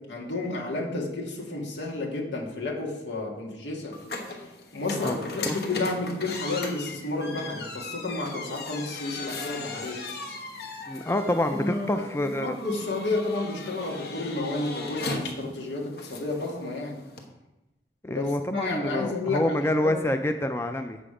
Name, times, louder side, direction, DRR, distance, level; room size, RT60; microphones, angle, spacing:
voice 1, 0.1-4.0 4.7-10.1 11.5-17.0 18.1-19.6 19.8-19.9, left 2 dB, 85° left, -1 dB, 1.9 m, -31 dB
sound 1, 3.9-17.3, left 3 dB, 60° left, 1.1 m, -38 dB
voice 2, 10.9-12.6 18.0-21.0, left 1 dB, 15° left, 7 dB, 0.3 m, -27 dB
7.6 x 7.2 x 4.9 m, 1.0 s
head